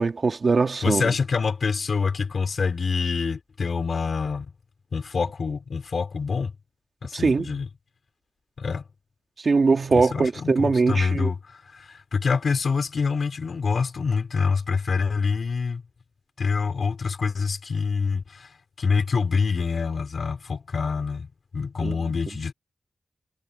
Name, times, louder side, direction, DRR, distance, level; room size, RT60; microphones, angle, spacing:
voice 1, 0.0-1.1 7.1-7.5 9.4-11.3 21.8-21.9, right 4 dB, 50° right, 2.4 m, -21 dB
voice 2, 0.8-4.5 4.9-6.5 7.0-7.7 8.6-8.8 9.9-15.8 16.4-21.3 21.5-22.5, left 5 dB, 65° left, 4.3 m, -26 dB
wide cardioid pair, 140°, 0 cm